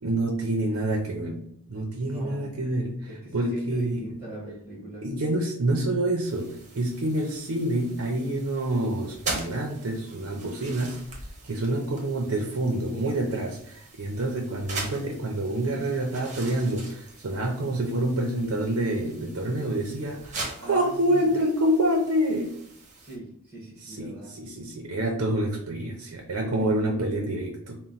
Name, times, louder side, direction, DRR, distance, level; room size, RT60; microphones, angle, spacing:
voice 1, 0.0-4.1 5.0-11.0 11.4-22.5 23.8-27.8, right 1 dB, 65° right, 2 dB, 0.6 m, -27 dB
voice 2, 2.0-2.5 3.0-5.0 20.6-21.3 23.0-24.3, right 1 dB, 10° right, -5 dB, 1.3 m, -41 dB
sound 1, 6.2-23.2, right 3 dB, 35° right, 0.9 m, -41 dB
4.2 x 2.2 x 3.9 m, 0.73 s
head